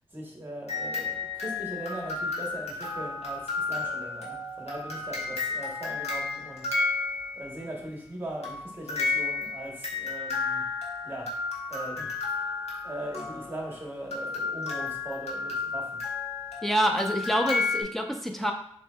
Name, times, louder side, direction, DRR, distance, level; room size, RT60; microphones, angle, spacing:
voice 1, 0.1-6.7 7.3-10.7 11.0-11.3 11.7-12.1 12.8-16.0, right 1 dB, 20° right, -2 dB, 1.2 m, -39 dB
sound 1, 0.7-7.6 8.4-17.8, left 4 dB, 70° left, 1.2 m, -32 dB
voice 2, 16.6-18.5, right 1 dB, ahead, 3 dB, 0.5 m, -26 dB
6.2 x 2.8 x 2.3 m, 0.67 s
wide cardioid pair, 90°, 11 cm